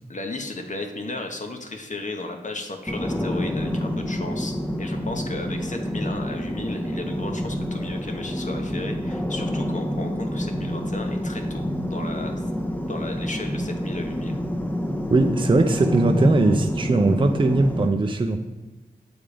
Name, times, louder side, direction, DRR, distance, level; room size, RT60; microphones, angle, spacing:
voice 1, 0.1-12.3 12.9-14.4, left 2 dB, 50° left, 4 dB, 1.0 m, -34 dB
sound 1, 2.9-17.9, equal, 10° left, 0.8 m, -27 dB
voice 2, 15.1-18.4, right 2 dB, 30° right, 5 dB, 0.5 m, -20 dB
7.1 x 3.8 x 4.9 m, 1.1 s
cardioid pair, 50°, 17 cm